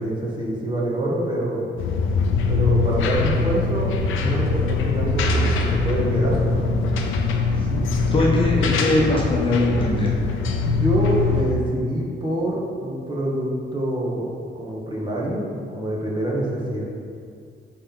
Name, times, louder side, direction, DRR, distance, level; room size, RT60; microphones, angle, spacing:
voice 1, 0.0-1.6 2.5-6.7 10.6-16.8, right 1 dB, 20° right, -5 dB, 1.8 m, -26 dB
sound 1, 1.8-11.5, left 3 dB, 85° left, 0.7 m, -22 dB
voice 2, 7.5-7.8 8.1-10.1, left 2 dB, 25° left, -4 dB, 1.3 m, -21 dB
9.5 x 3.8 x 4.0 m, 2.3 s
cardioid pair, 90°, 20 cm